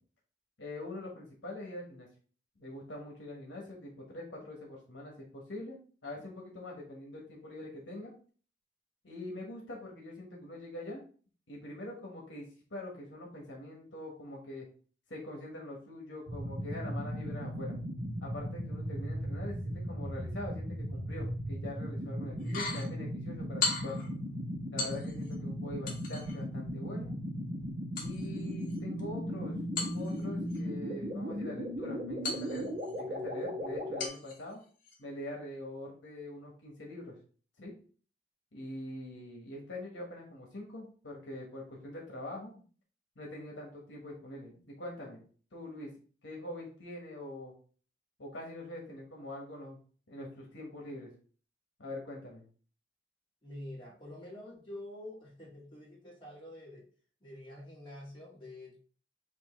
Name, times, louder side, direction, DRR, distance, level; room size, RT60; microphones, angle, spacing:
voice 1, 0.6-2.1 2.6-8.1 9.0-11.0 11.5-14.7 15.1-17.8 18.2-24.0 24.7-27.1 27.9-34.6 35.0-37.2 37.6-37.7 38.5-42.6 43.2-45.2 45.5-45.9 46.2-47.5 48.2-49.8 50.1-51.1 51.8-52.4, left 1 dB, 75° left, -1 dB, 1.3 m, -44 dB
sound 1, 16.3-34.1, equal, 40° right, 1.1 m, -37 dB
sound 2, 22.4-22.9 23.6-24.1 24.8-25.4 25.9-26.4 28.0-29.0 29.8-30.6 32.2-33.0 34.0-34.4 34.8-35.0, left 3 dB, 50° left, 1.3 m, -37 dB
voice 2, 53.4-56.9 57.2-58.8, left 1 dB, 30° left, -5 dB, 1.9 m, -47 dB
6.2 x 2.7 x 3.1 m, 0.42 s
head